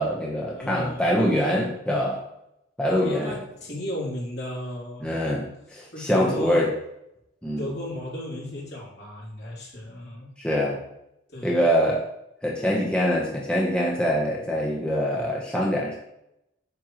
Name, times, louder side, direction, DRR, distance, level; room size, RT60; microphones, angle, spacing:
voice 1, 0.0-2.2 2.8-3.3 5.0-6.7 7.4-7.7 10.4-10.8 11.4-12.0 12.4-16.0, equal, 5° left, -3 dB, 1.0 m, -24 dB
voice 2, 0.5-1.1 2.9-5.1 5.9-6.6 7.6-10.3 11.3-11.6, left 1 dB, 60° left, -5 dB, 3.1 m, -34 dB
8.8 x 6.2 x 3.1 m, 0.81 s
head